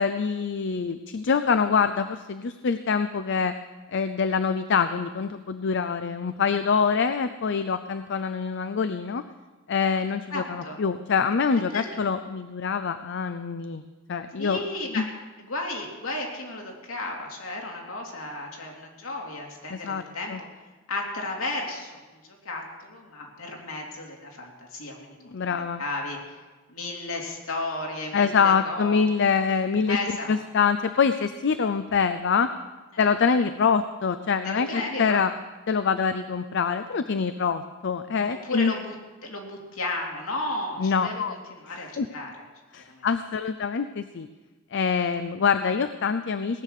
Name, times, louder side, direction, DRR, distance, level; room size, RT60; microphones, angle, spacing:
voice 1, 0.0-3.5 3.9-9.2 9.7-13.8 14.1-14.6 14.9-15.1 19.7-20.0 20.3-20.4 25.3-25.8 28.1-32.5 33.0-35.3 35.7-38.7 40.8-41.3 41.7-42.1 42.7-44.3 44.7-46.6, left 5 dB, 60° left, 11 dB, 0.5 m, -25 dB
voice 2, 10.3-10.8 11.5-11.8 14.4-15.1 15.4-20.5 20.9-26.4 26.7-29.0 29.9-30.4 32.9-33.0 34.4-35.2 38.4-38.9 39.2-42.3 42.9-43.1, left 2 dB, 85° left, 0 dB, 3.0 m, -34 dB
18.0 x 9.4 x 6.6 m, 1.2 s
head